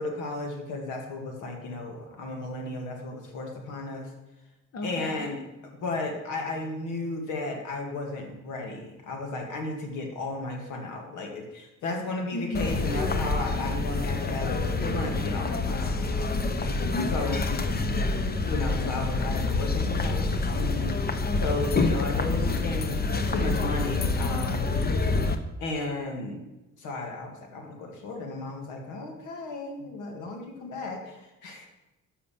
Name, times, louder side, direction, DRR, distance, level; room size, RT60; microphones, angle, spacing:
voice 1, 0.0-4.1 4.8-16.2 17.1-17.5 18.5-21.0 21.4-23.0 23.3-24.7 25.6-26.4 26.8-31.7, left 2 dB, 85° left, 2 dB, 1.8 m, -34 dB
voice 2, 4.7-5.3 12.3-13.0 16.9-18.2, left 2 dB, 55° left, 3 dB, 1.3 m, -35 dB
sound 1, 12.5-25.4, left 3 dB, 30° left, 0.8 m, -27 dB
7.4 x 5.6 x 6.9 m, 0.98 s
cardioid pair, 90°, 30 cm